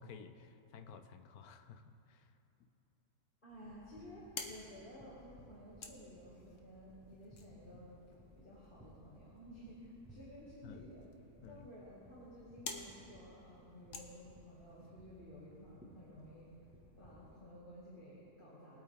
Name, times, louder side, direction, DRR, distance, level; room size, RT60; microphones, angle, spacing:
voice 1, 0.0-2.3 2.6-2.7 10.6-10.8 11.4-11.7, left 6 dB, 85° left, 9 dB, 1.2 m, -54 dB
voice 2, 3.4-11.1 11.4-16.5 17.0-18.8, equal, 35° left, -9 dB, 2.3 m, -54 dB
sound 1, 3.5-17.4, right 1 dB, 10° right, 1.4 m, -62 dB
sound 2, 4.1-14.9, left 4 dB, 60° left, 1.3 m, -53 dB
22.0 x 8.5 x 3.6 m, 2.9 s
omnidirectional pair, 1.6 m